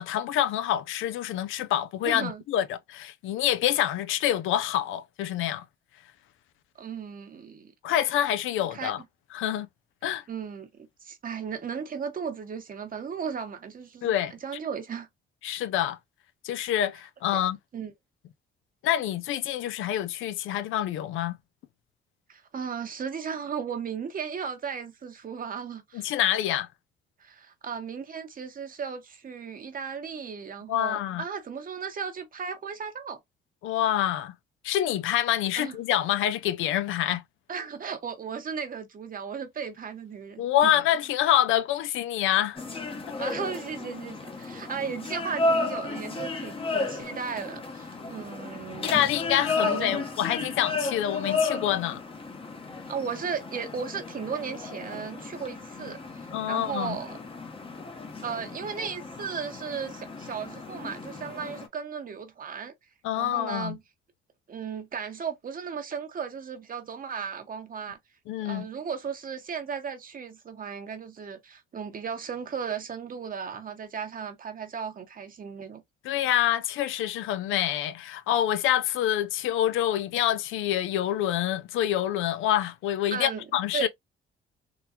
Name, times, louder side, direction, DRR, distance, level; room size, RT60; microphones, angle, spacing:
voice 1, 0.0-5.6 7.8-9.0 9.3-9.7 10.0-10.2 14.0-14.3 15.4-16.0 16.4-17.6 18.8-21.4 25.9-26.7 30.7-31.2 33.6-34.3 34.6-37.2 40.4-42.6 48.8-52.0 56.3-57.0 63.0-63.8 68.3-68.7 76.0-83.9, left 11 dB, 85° left, 0.5 m, -26 dB
voice 2, 2.0-2.4 6.8-7.7 8.7-8.9 10.3-15.1 17.3-17.4 17.7-17.9 22.3-26.1 27.2-33.2 35.6-35.8 37.5-40.7 43.2-49.1 49.6-50.0 52.9-57.2 58.2-62.7 63.2-63.8 64.5-68.0 68.4-75.8 83.1-83.5 83.7-83.9, right 6 dB, 45° right, 0.9 m, -35 dB
sound 1, 42.5-61.7, left 3 dB, 25° left, 0.8 m, -33 dB
3.8 x 2.2 x 2.7 m
cardioid pair, 90°, 20 cm